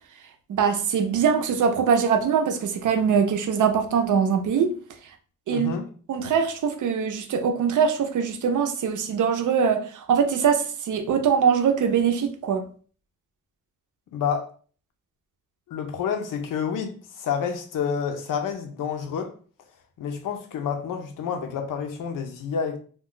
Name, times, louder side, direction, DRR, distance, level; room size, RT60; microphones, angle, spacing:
voice 1, 0.5-4.8 5.5-5.7 6.1-12.6, right 7 dB, 70° right, 0.5 m, -22 dB
voice 2, 5.5-5.8 14.1-14.5 15.7-19.3 20.0-22.8, left 7 dB, 80° left, 0.6 m, -29 dB
2.3 x 2.2 x 3.7 m
wide cardioid pair, 120°, 32 cm